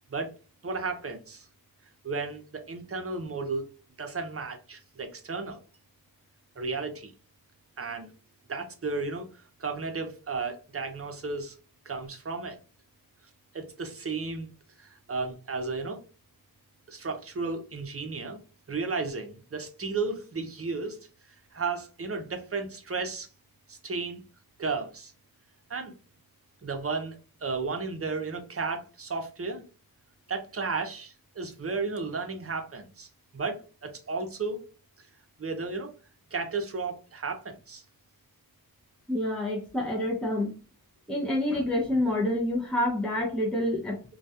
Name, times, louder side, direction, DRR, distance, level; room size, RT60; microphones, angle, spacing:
voice 1, 0.6-1.5 2.0-3.7 4.0-5.6 6.6-7.1 7.8-8.1 8.5-9.3 9.6-11.5 11.9-12.6 13.5-14.5 14.8-16.0 16.9-18.4 18.7-21.0 21.5-23.3 23.7-24.2 24.6-25.1 25.7-25.9 26.6-27.2 27.4-29.6 30.3-33.1 33.3-34.6 35.4-35.9 36.3-37.8, right 4 dB, 40° right, 0.6 m, -33 dB
voice 2, 39.1-40.5 41.1-44.0, left 1 dB, ahead, 0.5 m, -27 dB
2.3 x 2.2 x 2.7 m
wide cardioid pair, 65°, 37 cm